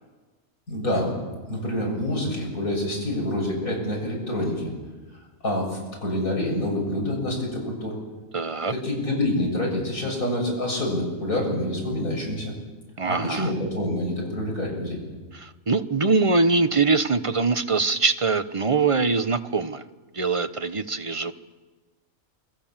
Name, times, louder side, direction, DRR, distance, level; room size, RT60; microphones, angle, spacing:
voice 1, 0.7-1.2 1.5-4.7 5.4-8.0 8.7-12.5 13.0-15.0, left 1 dB, 75° left, 0 dB, 7.9 m, -27 dB
voice 2, 8.3-8.7 13.0-13.5 15.3-19.8 20.1-21.3, right 4 dB, 25° right, 10 dB, 1.0 m, -23 dB
28.5 x 23.0 x 7.5 m, 1.3 s
omnidirectional pair, 1.5 m